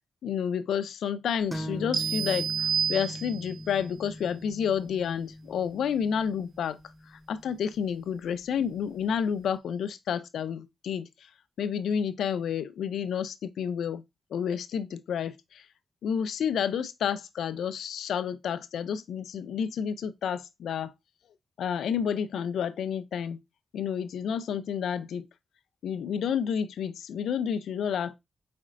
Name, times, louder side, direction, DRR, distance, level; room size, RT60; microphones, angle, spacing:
voice 1, 0.2-6.8 7.1-11.3 11.6-14.0 14.3-15.7 16.0-20.9 21.6-23.4 23.7-25.2 25.8-28.1, left 7 dB, 90° left, 0.4 m, -30 dB
sound 1, 1.5-9.0, equal, ahead, 0.8 m, -41 dB
sound 2, 1.9-3.7, right 7 dB, 70° right, 0.4 m, -29 dB
4.9 x 4.3 x 2.5 m
cardioid pair, 55°, 0 cm